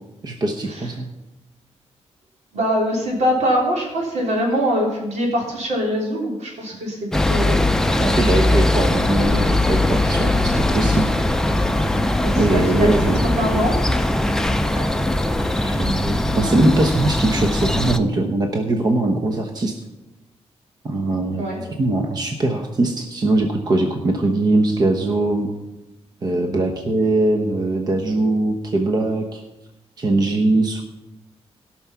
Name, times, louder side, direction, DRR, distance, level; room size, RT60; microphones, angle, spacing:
voice 1, 0.2-1.1 8.0-11.1 12.4-13.2 14.7-14.9 15.4-19.8 20.8-21.5 21.8-25.5 26.2-29.4 30.0-30.8, right 2 dB, 35° right, 4 dB, 0.9 m, -21 dB
voice 2, 2.5-7.6 12.2-13.0 13.4-13.8 21.4-21.6, equal, 80° right, -2 dB, 3.5 m, -22 dB
sound 1, 7.1-18.0, left 1 dB, 5° left, 0.5 m, -20 dB
17.0 x 6.1 x 5.7 m, 1.0 s
wide cardioid pair, 175°, 11 cm